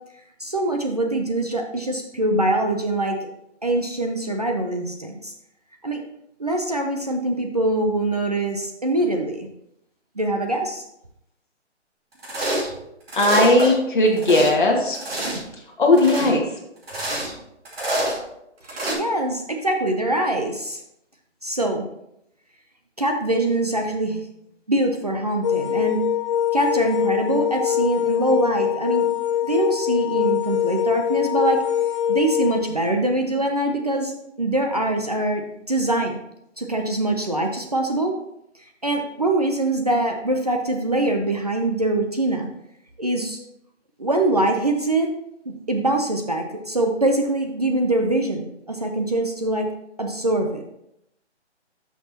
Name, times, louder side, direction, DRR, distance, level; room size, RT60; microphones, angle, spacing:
voice 1, 0.4-3.2 3.6-5.3 5.8-6.0 6.4-9.5 10.2-10.8 18.7-20.8 21.4-21.9 23.0-24.2 24.7-26.0 26.5-29.1 29.4-31.6 32.1-36.2 36.6-38.1 38.8-42.5 43.0-43.4 44.0-45.1 45.5-49.7 50.0-50.6, right 2 dB, 35° right, 3 dB, 0.6 m, -23 dB
sound 1, 12.2-12.8 13.1-13.7 14.1-14.5 14.9-15.5 15.9-16.3 16.8-17.3 17.6-18.2 18.7-18.9, right 1 dB, 55° right, 2.6 m, -26 dB
voice 2, 13.2-15.0 15.8-16.4, left 2 dB, 45° left, 0 dB, 1.7 m, -17 dB
sound 2, 25.4-32.6, left 10 dB, 25° left, 0.9 m, -23 dB
12.0 x 5.8 x 2.8 m, 0.81 s
hypercardioid pair, 175°, 35 cm